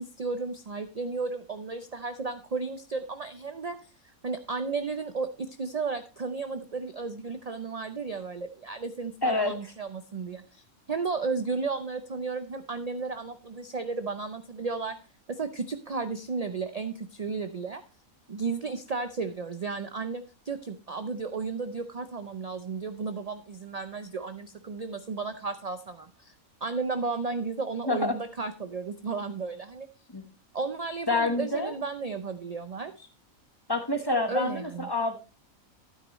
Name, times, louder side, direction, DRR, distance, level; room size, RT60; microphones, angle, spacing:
voice 1, 0.0-3.9 4.2-15.0 15.3-17.8 18.3-26.3 26.6-29.9 30.5-33.1 34.3-34.9, right 4 dB, 50° right, 9 dB, 0.4 m, -33 dB
voice 2, 9.2-9.5 27.9-28.1 30.1-30.2 31.1-31.7 33.7-35.2, left 2 dB, 20° left, 6 dB, 1.2 m, -27 dB
12.0 x 9.3 x 3.1 m, 0.31 s
omnidirectional pair, 1.5 m